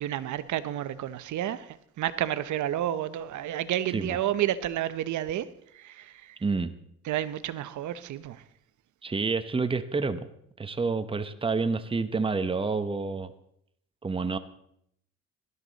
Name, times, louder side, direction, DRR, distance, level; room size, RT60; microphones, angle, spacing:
voice 1, 0.0-1.7 2.0-5.4 5.7-6.4 7.1-8.4, right 12 dB, 75° right, 0.9 m, -30 dB
voice 2, 6.4-6.7 9.0-10.3 10.6-13.3 14.0-14.4, right 4 dB, 20° right, 0.9 m, -28 dB
17.5 x 12.5 x 4.0 m
cardioid pair, 90°, 30 cm